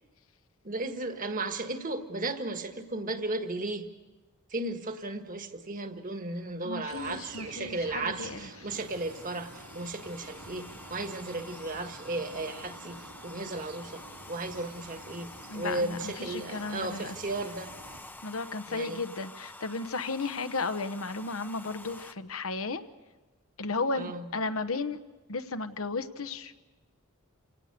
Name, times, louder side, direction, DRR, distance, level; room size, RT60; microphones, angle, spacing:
voice 1, 0.6-3.9 4.5-17.8 18.7-19.0 23.9-24.3, right 2 dB, 40° right, 7 dB, 1.5 m, -35 dB
voice 2, 6.6-8.4 15.5-17.1 18.2-22.8 23.6-25.0 25.3-26.6, left 3 dB, 70° left, 9 dB, 1.0 m, -34 dB
sound 1, 6.9-18.0, right 3 dB, 85° right, 3.3 m, -49 dB
Domestic sounds home sounds, 8.7-22.1, left 2 dB, 10° left, 0.7 m, -48 dB
27.5 x 18.5 x 6.8 m, 1.2 s
head